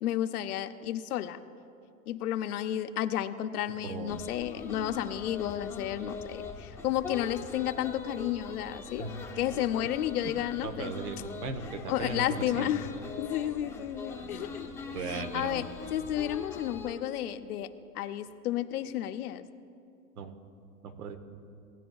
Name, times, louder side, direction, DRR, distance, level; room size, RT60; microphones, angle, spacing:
voice 1, 0.0-1.4 2.1-9.1 9.4-10.9 11.9-14.7 15.0-15.6 15.9-17.7 17.9-19.4, left 11 dB, 80° left, 10 dB, 0.7 m, -32 dB
voice 2, 3.8-4.2 9.0-9.1 10.6-12.7 14.2-14.4 14.9-15.7 20.1-20.3 20.8-21.2, right 4 dB, 85° right, 8 dB, 1.1 m, -37 dB
sound 1, 4.1-16.9, left 4 dB, 5° left, 0.6 m, -42 dB
17.5 x 9.2 x 2.3 m, 2.4 s
hypercardioid pair, 130°, 44 cm